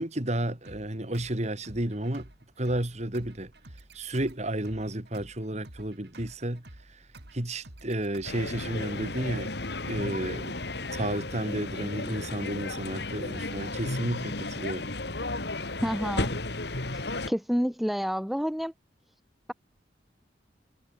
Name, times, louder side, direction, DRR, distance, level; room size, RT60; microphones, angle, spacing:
voice 1, 0.0-2.3 2.6-3.5 3.9-7.0 7.3-9.5 9.9-10.5 10.9-14.9, right 1 dB, 40° right, 2.4 m, -32 dB
sound 1, 0.6-8.6, right 1 dB, 60° right, 3.4 m, -51 dB
sound 2, 8.2-17.3, left 2 dB, 65° left, 2.8 m, -34 dB
voice 2, 15.8-16.3 17.3-18.7, equal, ahead, 0.4 m, -28 dB
head